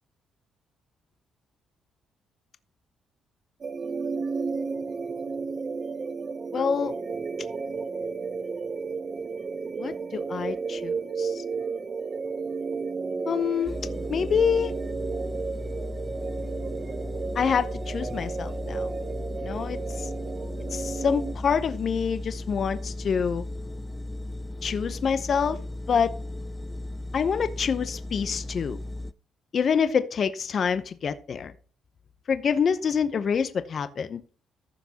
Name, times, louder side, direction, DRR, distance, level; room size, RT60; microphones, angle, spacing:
sound 1, 3.6-21.3, right 4 dB, 40° right, 0.7 m, -33 dB
voice 1, 6.5-6.9 9.8-11.4 13.3-13.8 14.1-14.7 17.3-18.9 19.4-20.1 20.7-23.4 24.6-25.6 25.9-26.1 27.1-28.8 29.5-31.5 32.3-34.2, left 6 dB, 50° left, 0.8 m, -26 dB
sound 2, 13.6-29.1, left 1 dB, 10° left, 0.4 m, -36 dB
14.5 x 6.0 x 2.9 m
cardioid pair, 90°, 0 cm